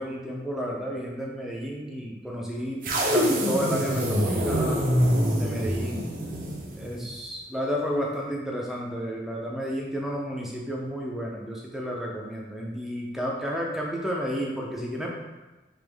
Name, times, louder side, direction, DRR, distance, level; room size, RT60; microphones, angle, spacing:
voice 1, 0.0-2.8 3.1-4.9 5.4-6.0 6.7-15.2, equal, ahead, -3 dB, 0.5 m, -31 dB
sound 1, 2.8-7.1, equal, 50° right, 0.6 m, -25 dB
3.5 x 2.9 x 3.4 m, 1.1 s
head